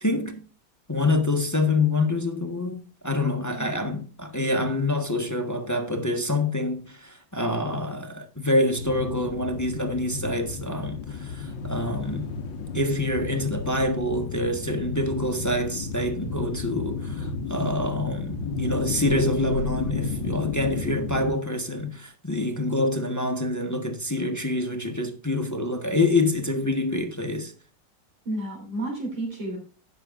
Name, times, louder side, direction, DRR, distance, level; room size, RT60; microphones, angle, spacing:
voice 1, 0.0-0.4 0.9-2.8 3.0-12.3 12.7-27.5, left 2 dB, 10° left, 1.0 m, -26 dB
voice 2, 3.2-3.8 28.3-29.6, right 1 dB, 85° right, 4.0 m, -32 dB
sound 1, 8.8-21.3, left 4 dB, 85° left, 1.8 m, -32 dB
17.0 x 6.4 x 2.5 m
omnidirectional pair, 2.0 m